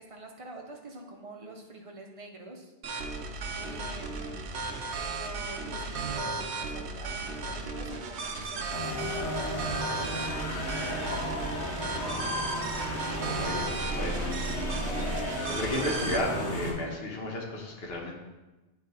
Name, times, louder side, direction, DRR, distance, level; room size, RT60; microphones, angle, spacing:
voice 1, 0.0-4.6 4.9-12.4, right 1 dB, 35° right, 1 dB, 0.8 m, -46 dB
sound 1, 2.8-16.2, right 3 dB, 75° right, 0.9 m, -35 dB
sound 2, 8.7-16.7, equal, 80° left, 1.8 m, -33 dB
voice 2, 13.1-18.1, left 1 dB, 60° left, 0 dB, 1.3 m, -34 dB
9.4 x 3.2 x 3.9 m, 1.1 s
omnidirectional pair, 1.2 m